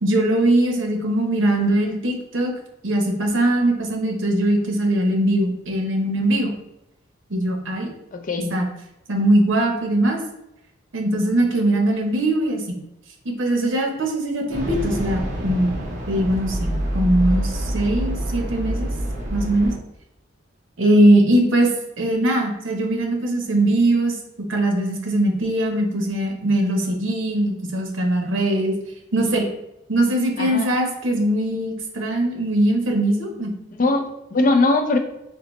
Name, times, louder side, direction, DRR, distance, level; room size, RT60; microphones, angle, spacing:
voice 1, 0.0-2.5 2.8-6.5 7.3-7.9 8.5-8.7 9.1-10.2 10.9-12.8 13.2-15.8 16.1-18.9 19.3-19.7 20.8-21.7 22.0-24.2 24.5-28.8 29.1-29.5 29.9-33.5, right 1 dB, 75° right, 2 dB, 0.9 m, -21 dB
voice 2, 8.1-8.5 30.4-30.7 33.8-35.0, left 2 dB, 40° left, 5 dB, 0.4 m, -20 dB
sound 1, 14.5-19.7, right 1 dB, 35° right, 0.9 m, -26 dB
3.9 x 3.0 x 3.1 m, 0.87 s
head